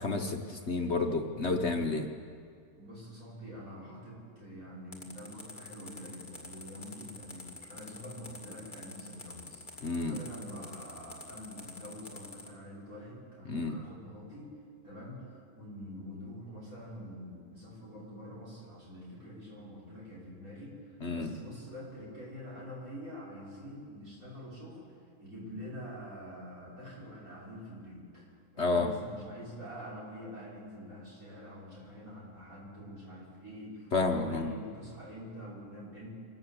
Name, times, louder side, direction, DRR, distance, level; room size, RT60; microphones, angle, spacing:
voice 1, 0.0-2.1 9.8-10.2 13.5-13.8 21.0-21.3 28.6-28.9 33.9-34.5, left 3 dB, 50° left, 3 dB, 1.3 m, -30 dB
voice 2, 2.7-14.5 14.8-24.9 25.2-36.1, equal, 60° right, -5 dB, 6.5 m, -46 dB
sound 1, 4.9-12.5, left 3 dB, 30° left, 2.2 m, -47 dB
25.0 x 13.5 x 8.3 m, 2.3 s
omnidirectional pair, 1.6 m